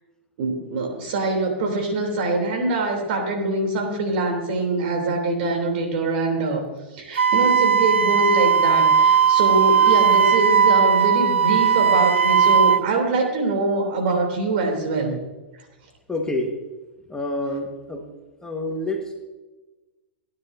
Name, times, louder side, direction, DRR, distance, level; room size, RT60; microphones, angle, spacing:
voice 1, 0.4-6.6 6.9-15.2, right 2 dB, 60° right, 3 dB, 3.4 m, -24 dB
Wind instrument woodwind instrument, 7.2-12.8, right 7 dB, 90° right, 0.4 m, -17 dB
voice 2, 16.1-16.6 17.1-18.1 18.4-19.3, left 1 dB, 10° left, 2 dB, 1.6 m, -28 dB
17.0 x 9.8 x 2.8 m, 1.2 s
hypercardioid pair, 105°, 6 cm